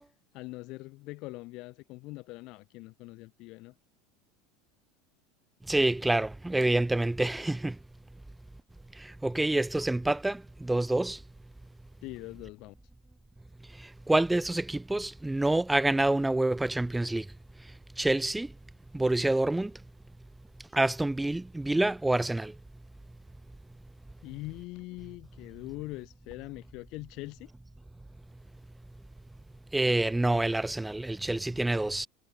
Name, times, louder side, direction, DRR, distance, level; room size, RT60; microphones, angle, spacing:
voice 1, 0.3-3.7 12.0-12.7 24.2-27.5, left 22 dB, 60° left, 2.5 m, -42 dB
voice 2, 5.7-7.8 9.0-11.2 14.1-17.3 18.0-18.5 18.9-19.7 20.7-22.5 29.7-32.1, right 2 dB, 5° right, 0.6 m, -27 dB
supercardioid pair, 125°, 0 cm